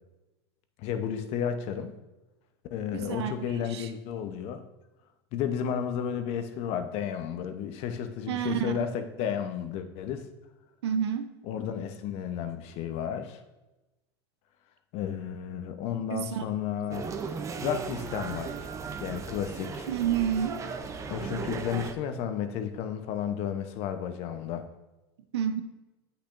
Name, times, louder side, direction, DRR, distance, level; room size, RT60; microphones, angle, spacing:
voice 1, 0.8-1.9 2.7-4.6 5.3-10.3 11.5-13.4 14.9-17.0 17.6-18.7 19.0-19.9 21.1-24.7, left 8 dB, 50° left, 8 dB, 0.9 m, -32 dB
voice 2, 2.9-3.3 3.7-3.9 8.3-8.7 10.8-11.3 16.1-16.4 19.9-20.6 25.3-25.6, right 9 dB, 85° right, 9 dB, 0.7 m, -29 dB
sound 1, 16.9-21.9, right 5 dB, 25° right, 0.6 m, -36 dB
8.9 x 8.1 x 2.6 m, 1.0 s
supercardioid pair, 115°, 13 cm